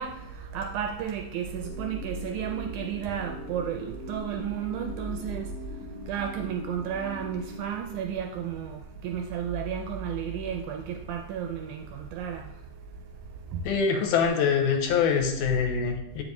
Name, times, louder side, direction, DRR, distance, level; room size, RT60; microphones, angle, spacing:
voice 1, 0.0-5.5 6.1-12.5 13.5-13.6, right 8 dB, 80° right, 3 dB, 1.8 m, -32 dB
sound 1, 1.3-8.5, left 3 dB, 60° left, 2.1 m, -43 dB
voice 2, 13.6-16.2, left 6 dB, 80° left, 4 dB, 2.2 m, -24 dB
7.8 x 5.2 x 3.1 m, 0.82 s
omnidirectional pair, 3.9 m